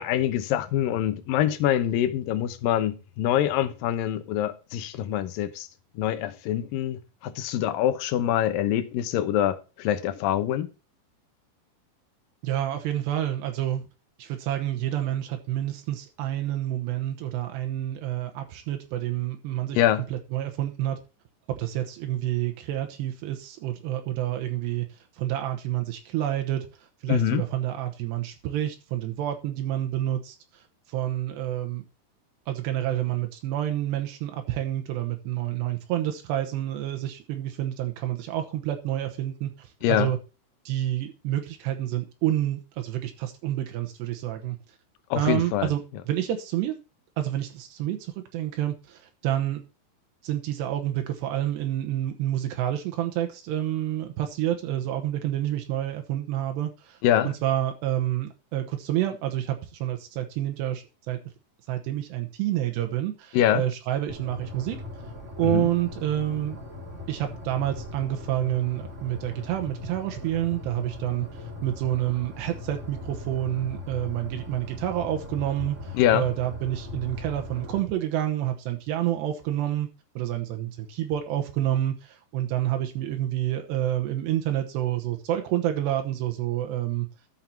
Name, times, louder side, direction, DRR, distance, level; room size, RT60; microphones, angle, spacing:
voice 1, 0.0-5.7 6.0-10.7 19.7-20.0 27.1-27.4 39.8-40.1 45.1-45.7 57.0-57.3 63.3-63.6 65.4-65.7 75.9-76.3, left 11 dB, 70° left, 2.3 m, -25 dB
voice 2, 12.4-13.8 14.2-19.8 20.1-21.0 21.5-24.9 25.2-26.7 27.0-30.4 30.9-31.8 32.5-40.2 40.7-44.6 45.2-45.8 46.1-46.8 47.2-49.6 50.2-57.0 57.2-61.2 61.7-64.8 65.4-66.6 67.1-79.9 80.2-87.1, right 12 dB, 85° right, 3.2 m, -28 dB
sound 1, 64.1-77.8, left 3 dB, 30° right, 1.5 m, -39 dB
13.0 x 5.7 x 4.4 m
omnidirectional pair, 4.8 m